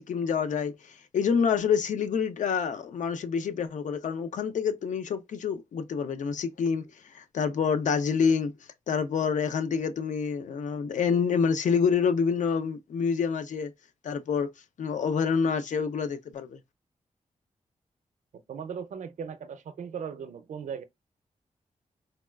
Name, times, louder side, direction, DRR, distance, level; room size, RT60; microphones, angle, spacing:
voice 1, 0.0-6.9 7.1-8.5 8.9-13.7 14.0-14.5 14.8-16.6, left 6 dB, 85° left, 0.5 m, -27 dB
voice 2, 18.5-20.8, right 7 dB, 80° right, 0.5 m, -37 dB
4.0 x 2.3 x 2.2 m
wide cardioid pair, 140°, 12 cm